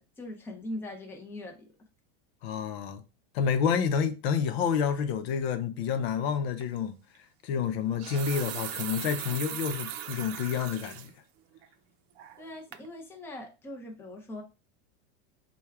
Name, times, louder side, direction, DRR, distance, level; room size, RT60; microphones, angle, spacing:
voice 1, 0.0-1.6 12.4-14.4, left 1 dB, 5° left, 0.6 m, -41 dB
voice 2, 2.4-3.0 3.3-7.0 7.4-11.1, left 7 dB, 75° left, 0.7 m, -29 dB
sound 1, 6.6-6.8 7.8-11.1 11.6-11.7 12.2-12.5 12.7-12.9, right 11 dB, 75° right, 0.6 m, -38 dB
4.4 x 2.3 x 3.4 m
supercardioid pair, 155°, 31 cm